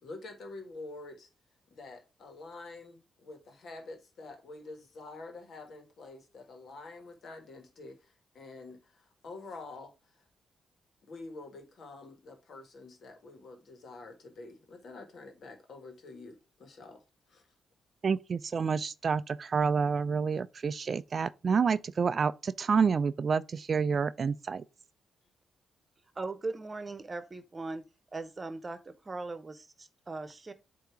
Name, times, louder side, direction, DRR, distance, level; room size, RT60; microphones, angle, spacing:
voice 1, 0.0-1.3 1.7-9.9 11.1-17.0 17.3-17.4, left 3 dB, 65° left, 1.6 m, -47 dB
voice 2, 18.0-24.6, right 5 dB, 50° right, 0.3 m, -28 dB
voice 3, 26.2-27.8 28.1-30.5, right 3 dB, 35° right, 1.0 m, -39 dB
7.8 x 2.8 x 4.6 m
hypercardioid pair, 45°, 0 cm